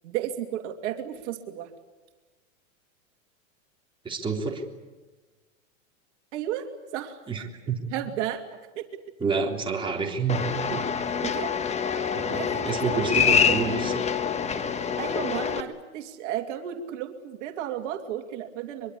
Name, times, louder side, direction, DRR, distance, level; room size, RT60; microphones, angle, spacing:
voice 1, 0.0-1.7 6.3-6.7 6.9-7.2 7.9-8.4 8.8-8.9 11.0-11.6 12.0-13.6 14.0-14.1 14.8-18.9, right 10 dB, 60° right, 5 dB, 2.7 m, -34 dB
voice 2, 4.0-4.6 7.3-7.8 9.2-10.4 10.7-10.9 12.1-14.0, right 5 dB, 10° right, 0 dB, 3.7 m, -28 dB
sound 1, 10.3-15.6, left 6 dB, 15° left, 1.4 m, -26 dB
24.0 x 23.0 x 8.6 m, 1.2 s
supercardioid pair, 130°, 40 cm